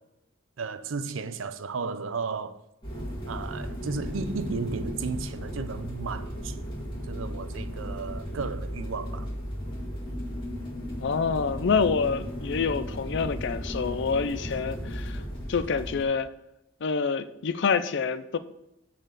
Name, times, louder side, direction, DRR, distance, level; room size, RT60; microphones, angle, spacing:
voice 1, 0.6-2.6 3.3-6.6 7.1-9.3, right 4 dB, 80° right, 0.5 m, -34 dB
sound 1, 2.8-16.0, equal, 25° left, 2.0 m, -35 dB
voice 2, 11.0-15.2 15.5-16.3 16.8-18.4, left 5 dB, 65° left, 0.5 m, -27 dB
6.5 x 4.2 x 6.3 m
head